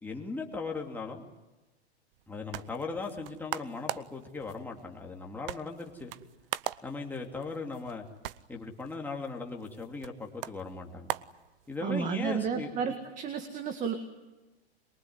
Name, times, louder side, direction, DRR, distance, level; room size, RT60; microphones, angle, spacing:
voice 1, 0.0-1.3 2.3-6.1 6.8-8.0 8.5-11.1 11.7-12.9, left 3 dB, 5° left, 0 dB, 2.8 m, -38 dB
sound 1, 2.1-12.1, right 14 dB, 55° right, 0.9 m, -42 dB
voice 2, 11.8-13.9, right 7 dB, 20° right, 7 dB, 1.9 m, -32 dB
23.0 x 23.0 x 9.7 m, 1.1 s
hypercardioid pair, 150°, 34 cm